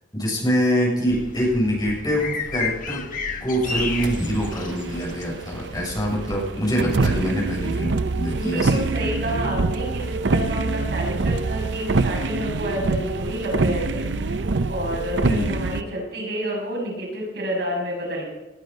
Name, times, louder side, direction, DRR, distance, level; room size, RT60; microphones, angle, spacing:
voice 1, 0.1-3.0 3.3-8.8 15.2-15.6, equal, 25° left, -3 dB, 7.3 m, -24 dB
sound 1, 1.1-6.1, left 4 dB, 50° left, 1.5 m, -33 dB
sound 2, 3.6-15.8, right 3 dB, 90° right, 0.7 m, -25 dB
voice 2, 8.4-14.1 14.7-18.3, equal, 65° right, -2 dB, 6.5 m, -29 dB
20.0 x 11.5 x 5.4 m, 1.1 s
head